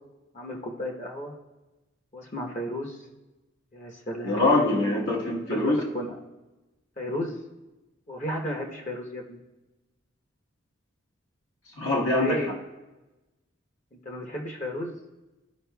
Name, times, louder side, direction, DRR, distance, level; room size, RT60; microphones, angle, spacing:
voice 1, 0.3-1.3 2.1-3.0 3.7-4.8 5.5-6.2 7.0-7.4 8.1-9.4 12.2-12.5 13.9-15.0, equal, 35° left, 0 dB, 0.9 m, -33 dB
voice 2, 4.2-5.8 11.8-12.4, left 2 dB, 65° left, -5 dB, 1.3 m, -23 dB
14.5 x 5.4 x 2.3 m, 1.1 s
head